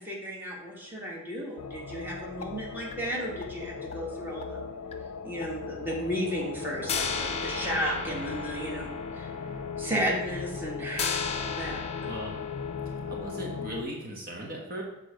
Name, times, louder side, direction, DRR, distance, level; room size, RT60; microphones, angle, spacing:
voice 1, 0.0-4.6 5.2-9.3 9.8-11.8, equal, 10° right, -3 dB, 1.6 m, -34 dB
sound 1, 1.6-13.8, left 6 dB, 90° left, 0.4 m, -38 dB
sound 2, 1.9-2.0 2.4-2.5 2.9-3.1 3.4-3.5 3.9-4.0 4.4-4.5 4.9-5.0 5.4-5.5 5.9-6.0 6.4-6.5 6.9-13.6, left 5 dB, 30° left, 0.7 m, -36 dB
voice 2, 12.0-12.4 13.0-14.8, right 1 dB, 45° right, -1 dB, 1.3 m, -37 dB
6.9 x 4.1 x 6.4 m, 0.97 s
head